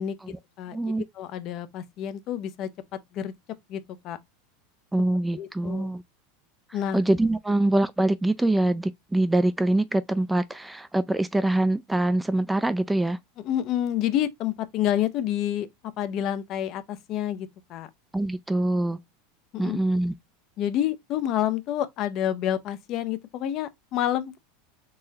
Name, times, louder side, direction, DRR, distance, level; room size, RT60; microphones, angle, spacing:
voice 1, 0.0-0.8 1.1-3.3 3.7-4.2 5.3-5.9 6.7-7.0 13.4-15.7 16.0-17.9 19.5-19.8 20.6-24.4, left 11 dB, 50° left, 0.5 m, -29 dB
voice 2, 0.7-1.0 4.9-6.0 6.9-13.2 18.1-19.0 19.6-20.1, right 1 dB, 5° right, 0.3 m, -24 dB
3.8 x 3.0 x 2.7 m
hypercardioid pair, 100°, 0 cm